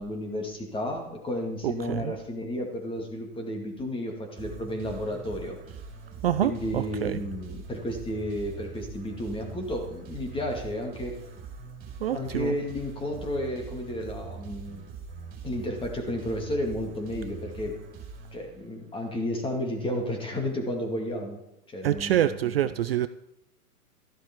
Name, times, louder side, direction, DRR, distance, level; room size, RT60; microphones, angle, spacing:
voice 1, 0.0-5.6 6.4-11.2 12.1-14.8 15.4-17.8 18.3-21.4 21.7-22.3, left 1 dB, 10° left, 3 dB, 2.2 m, -32 dB
voice 2, 1.6-2.1 6.2-7.2 12.0-12.5 21.8-23.1, right 12 dB, 40° right, 12 dB, 0.4 m, -26 dB
sound 1, 4.3-18.9, right 5 dB, 20° right, 4.4 m, -43 dB
13.5 x 11.5 x 4.5 m, 0.83 s
hypercardioid pair, 130°, 47 cm